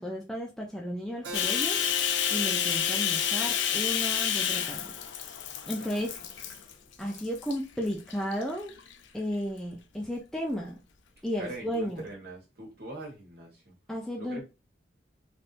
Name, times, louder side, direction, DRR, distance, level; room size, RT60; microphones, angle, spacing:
voice 1, 0.0-1.8 2.3-4.9 5.7-6.6 7.0-8.7 9.1-10.8 11.2-12.0 13.9-14.4, equal, ahead, 0.5 m, -34 dB
Keyboard (musical), 1.2-6.4, equal, 80° right, 0.8 m, -44 dB
Bathtub (filling or washing), 1.3-6.7 7.1-7.6 8.1-8.9, left 9 dB, 80° left, 0.4 m, -29 dB
voice 2, 5.8-6.2 11.4-13.8 14.2-14.4, right 2 dB, 55° right, 1.4 m, -42 dB
3.4 x 2.7 x 2.5 m
head